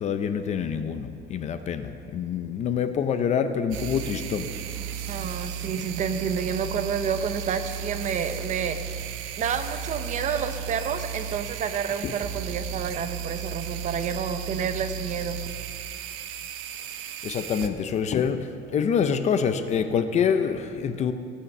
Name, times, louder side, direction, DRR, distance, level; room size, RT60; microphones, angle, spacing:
voice 1, 0.0-4.5 17.2-21.1, left 7 dB, 35° left, 10 dB, 0.5 m, -26 dB
sound 1, 3.7-17.7, right 8 dB, 85° right, 0.9 m, -34 dB
voice 2, 5.1-15.4, right 7 dB, 35° right, 9 dB, 0.6 m, -29 dB
15.5 x 8.4 x 6.6 m, 2.4 s
cardioid pair, 180°, 21 cm